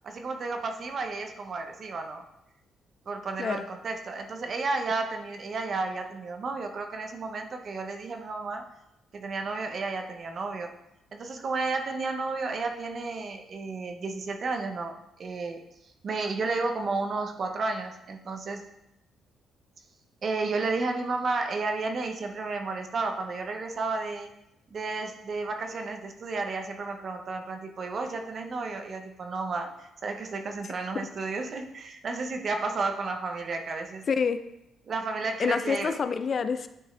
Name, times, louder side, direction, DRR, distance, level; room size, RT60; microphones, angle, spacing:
voice 1, 0.0-2.2 3.1-8.6 9.1-10.7 11.1-15.6 16.0-18.6 20.2-24.3 24.7-34.0 34.9-36.0, right 3 dB, 50° right, 5 dB, 0.8 m, -32 dB
voice 2, 34.1-34.4 35.4-36.7, left 5 dB, 45° left, 11 dB, 0.4 m, -27 dB
10.0 x 3.5 x 3.3 m, 0.84 s
cardioid pair, 90°, 0 cm